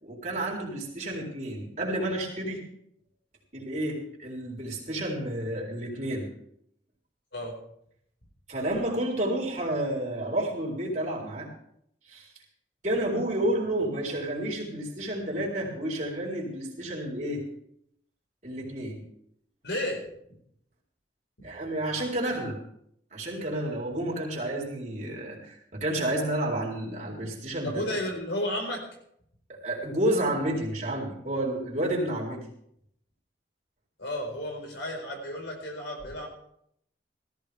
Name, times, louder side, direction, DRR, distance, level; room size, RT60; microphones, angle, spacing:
voice 1, 0.0-2.6 3.5-6.3 8.5-11.5 12.1-12.3 12.8-17.4 18.4-19.0 21.4-22.6 23.1-27.9 29.5-32.4, right 1 dB, 40° right, -3 dB, 4.1 m, -30 dB
voice 2, 19.6-20.0 27.6-28.9 34.0-36.3, left 1 dB, 85° left, 2 dB, 4.8 m, -32 dB
17.5 x 15.0 x 3.5 m, 0.71 s
head